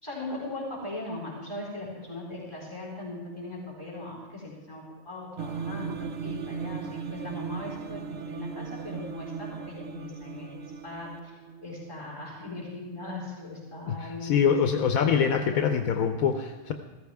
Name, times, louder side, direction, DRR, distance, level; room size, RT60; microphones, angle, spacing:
voice 1, 0.0-11.3 11.6-15.6, left 2 dB, 20° left, -5 dB, 4.3 m, -39 dB
sound 1, 5.4-13.0, right 6 dB, 60° right, 0.7 m, -38 dB
voice 2, 13.9-16.7, left 7 dB, 85° left, 5 dB, 1.2 m, -24 dB
16.0 x 14.5 x 3.5 m, 1.3 s
omnidirectional pair, 1.4 m